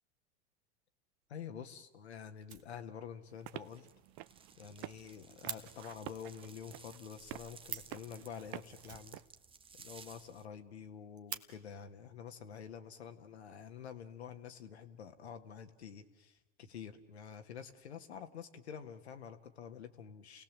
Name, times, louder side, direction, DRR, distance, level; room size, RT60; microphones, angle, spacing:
Fire, 1.2-1.3 1.7-1.8 2.0-2.1 2.4-3.2 3.5-3.6 4.0-4.1 4.3-4.4 4.7-5.6 7.4-7.5 7.6-8.0 8.8-9.7 10.0-10.1 10.4-10.5 10.9-11.4 12.4-12.6 13.2-13.8, right 9 dB, 85° right, 1.4 m, -46 dB
voice 1, 1.3-3.9 4.6-9.2 9.7-20.4, left 7 dB, 90° left, 7 dB, 1.6 m, -48 dB
sound 1, 3.3-9.3, right 17 dB, 55° right, 0.7 m, -50 dB
sound 2, 3.6-10.5, right 5 dB, 15° right, 0.8 m, -58 dB
30.0 x 18.0 x 7.4 m, 1.1 s
hypercardioid pair, 95°, 31 cm